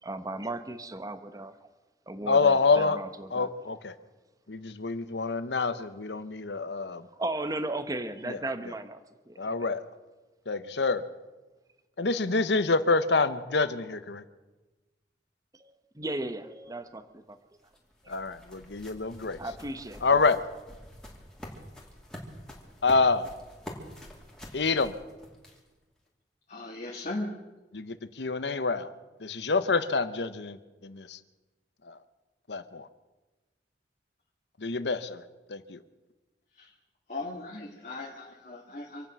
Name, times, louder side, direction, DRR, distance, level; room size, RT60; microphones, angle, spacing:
voice 1, 0.0-1.7 2.1-3.5 5.8-5.9 6.9-9.7 15.5-17.4 18.0-18.1 19.1-20.2, right 2 dB, 20° right, 10 dB, 1.0 m, -36 dB
voice 2, 2.3-3.0 3.3-3.9 4.5-7.1 8.3-8.4 9.4-9.8 10.5-11.0 12.0-14.2 18.1-19.4 20.0-20.4 22.8-23.3 24.5-24.9 27.7-28.9 29.2-31.2 31.9-32.0 32.5-32.9 34.6-35.2 35.5-35.8, left 4 dB, 75° left, 12 dB, 1.0 m, -27 dB
sound 1, 17.3-25.8, equal, 5° left, 2.7 m, -47 dB
voice 3, 26.5-27.4 36.5-36.7 37.1-39.1, left 2 dB, 45° left, -1 dB, 1.7 m, -38 dB
26.0 x 9.1 x 6.1 m, 1.2 s
head